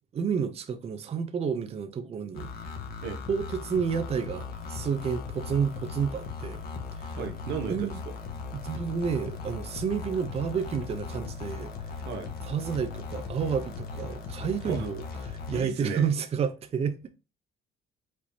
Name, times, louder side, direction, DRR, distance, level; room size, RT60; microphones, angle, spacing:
voice 1, 0.1-2.5 3.3-6.6 7.0-7.2 7.7-8.0 8.5-12.0 12.4-17.0, right 6 dB, 35° right, 0.6 m, -30 dB
sound 1, 2.3-15.6, left 4 dB, 65° left, 1.3 m, -38 dB
voice 2, 7.2-7.9 12.0-12.3 14.6-14.9 15.5-16.1, right 6 dB, 85° right, 1.1 m, -34 dB
5.1 x 3.4 x 2.7 m
cardioid pair, 110°, 17 cm